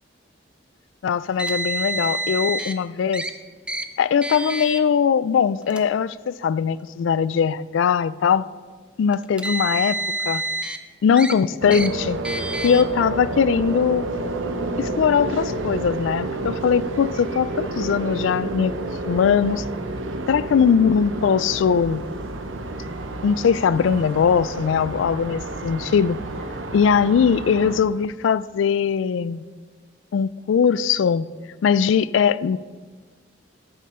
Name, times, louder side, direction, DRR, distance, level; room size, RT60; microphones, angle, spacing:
voice 1, 1.0-3.2 4.0-8.5 9.0-10.0 10.3-10.4 11.0-12.2 12.6-14.1 14.8-18.7 19.1-19.6 20.3-22.0 23.2-26.2 26.7-29.4 30.1-31.3 31.6-32.6, left 7 dB, 75° left, 18 dB, 0.3 m, -20 dB
Car, 1.4-2.7 3.1-3.3 3.7-3.8 4.2-4.8 5.6-5.8 6.8-6.9 9.1-10.8 11.2-11.3 11.7-11.9 12.2-12.8, right 1 dB, 5° right, 0.4 m, -28 dB
sound 1, 11.6-27.8, right 2 dB, 85° right, 0.9 m, -30 dB
13.5 x 7.4 x 4.3 m, 1.5 s
head